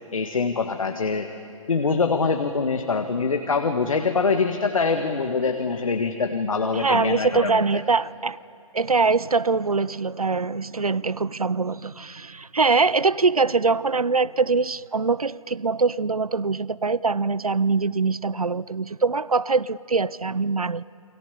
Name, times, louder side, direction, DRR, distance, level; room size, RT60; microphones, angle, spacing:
voice 1, 0.1-1.3 1.7-7.8, left 4 dB, 70° left, 6 dB, 1.6 m, -24 dB
voice 2, 6.7-8.4 8.7-20.8, right 4 dB, 90° right, 20 dB, 0.6 m, -23 dB
28.5 x 23.0 x 8.4 m, 2.6 s
figure-of-eight pair, 130°, 18 cm